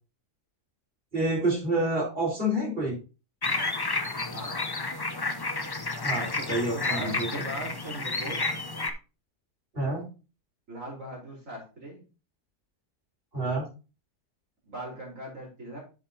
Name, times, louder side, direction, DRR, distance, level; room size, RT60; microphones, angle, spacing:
voice 1, 1.1-3.0 6.0-7.4 9.7-10.1 13.3-13.7, right 1 dB, 35° right, -3 dB, 4.6 m, -28 dB
sound 1, 3.4-8.9, left 3 dB, 30° left, 0.4 m, -31 dB
voice 2, 4.3-4.6 6.1-8.5 10.7-12.0 14.7-15.8, right 1 dB, 55° right, -3 dB, 4.7 m, -39 dB
9.4 x 7.3 x 2.8 m, 0.31 s
omnidirectional pair, 1.6 m